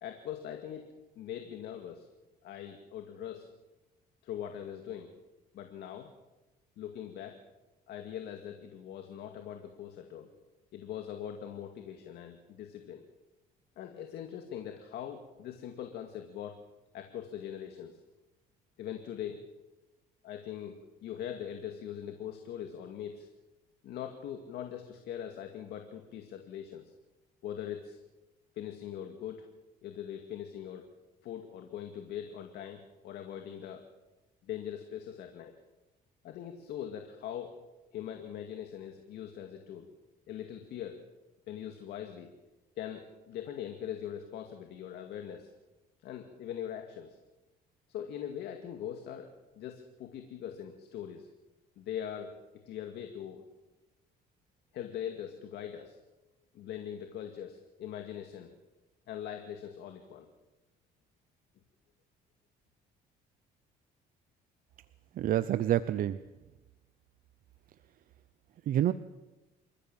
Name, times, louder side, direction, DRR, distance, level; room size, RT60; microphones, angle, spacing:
voice 1, 0.0-2.1 2.4-3.5 4.2-5.1 5.5-6.1 6.8-7.4 7.9-10.3 10.7-13.0 13.8-16.6 16.9-18.0 18.8-19.4 20.2-23.3 23.8-26.9 27.4-28.0 28.6-29.5 29.8-30.9 31.2-33.8 34.4-35.6 36.2-37.6 37.9-39.9 40.3-41.0 41.5-42.3 42.8-45.5 46.0-47.2 47.9-51.3 51.8-53.4 54.7-56.0 56.5-58.5 59.1-60.3, left 9 dB, 75° left, 5 dB, 2.2 m, -41 dB
voice 2, 65.2-66.2 68.7-68.9, right 12 dB, 55° right, 13 dB, 0.7 m, -27 dB
27.5 x 15.0 x 7.4 m, 1.1 s
cardioid pair, 110°, 17 cm